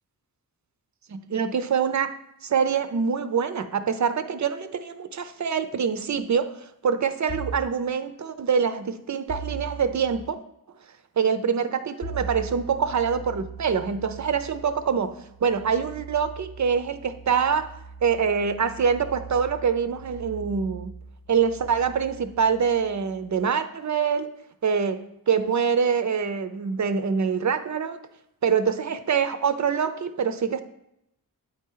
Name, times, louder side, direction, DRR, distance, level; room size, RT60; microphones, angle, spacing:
voice 1, 1.3-2.1 2.4-10.4 11.2-17.7 18.0-20.9 21.3-24.3 24.6-25.0 25.3-28.0 28.4-30.6, right 6 dB, 50° right, 10 dB, 0.5 m, -25 dB
sound 1, 7.3-7.7 9.3-10.2 12.0-23.4, right 4 dB, 35° left, 0.7 m, -40 dB
8.7 x 4.2 x 3.8 m, 0.80 s
wide cardioid pair, 115°, 38 cm